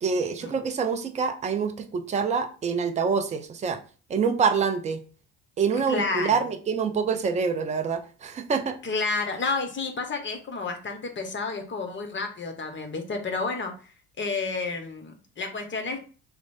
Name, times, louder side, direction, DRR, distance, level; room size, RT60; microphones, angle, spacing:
voice 1, 0.0-3.8 4.1-5.0 5.6-8.8, right 5 dB, 15° right, 6 dB, 0.4 m, -26 dB
voice 2, 5.9-6.4 8.8-13.7 14.2-16.0, left 4 dB, 25° left, 5 dB, 0.9 m, -30 dB
2.9 x 2.1 x 4.1 m, 0.38 s
hypercardioid pair, 60°, 46 cm